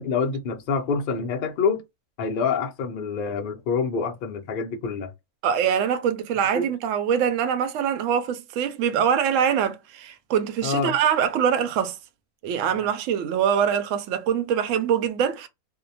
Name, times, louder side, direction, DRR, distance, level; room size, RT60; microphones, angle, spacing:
voice 1, 0.0-1.8 2.2-5.1 6.5-6.7 8.9-9.0 10.6-11.0, left 5 dB, 85° left, 0.4 m, -26 dB
voice 2, 5.4-12.0 12.4-15.5, right 8 dB, 70° right, 0.8 m, -23 dB
2.6 x 2.1 x 2.7 m
omnidirectional pair, 1.6 m